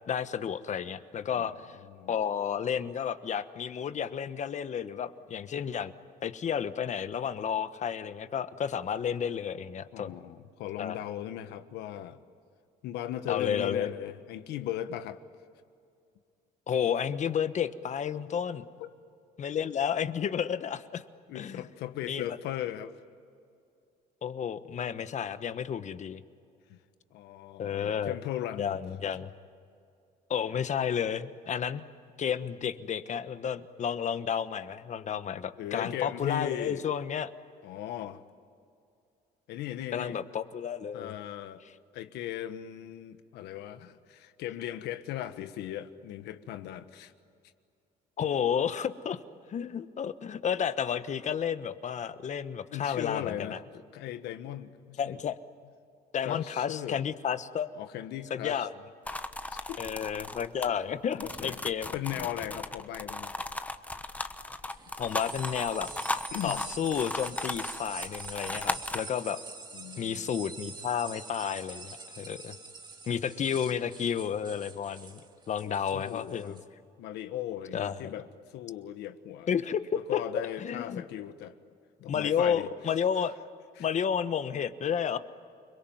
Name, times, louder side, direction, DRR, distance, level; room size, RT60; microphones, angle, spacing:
voice 1, 0.1-1.8 2.1-5.9 6.2-10.1 10.8-11.0 13.3-13.9 16.7-18.6 19.4-21.0 21.3-21.6 22.1-22.4 24.2-26.2 27.6-28.1 28.6-29.3 30.3-31.8 32.2-37.3 39.9-41.1 48.2-49.2 49.5-53.6 55.0-55.4 56.1-57.7 58.3-58.7 59.8-61.9 65.0-65.9 66.4-69.4 70.0-72.6 73.1-75.2 75.5-76.5 77.7-78.1 79.5-81.0 82.1-83.3 83.8-85.2, left 8 dB, 45° left, 1.2 m, -31 dB
voice 2, 1.8-2.1 9.9-12.2 12.8-15.2 18.8-18.9 21.3-22.9 26.7-26.8 27.1-28.8 35.6-36.8 37.6-38.2 39.5-40.2 40.9-41.6 41.9-47.1 52.7-53.6 53.9-55.2 56.2-57.0 57.7-58.7 59.1-59.2 59.5-59.8 61.1-61.6 61.9-63.3 66.3-66.7 69.7-70.3 75.6-76.6 77.0-79.5 79.9-81.5 82.0-82.7 83.8-83.9, left 12 dB, 85° left, 1.4 m, -38 dB
sound 1, 59.1-69.0, left 2 dB, 10° left, 1.1 m, -36 dB
sound 2, 64.7-76.6, right 4 dB, 25° right, 2.1 m, -45 dB
29.5 x 22.0 x 9.2 m
cardioid pair, 110°, 17 cm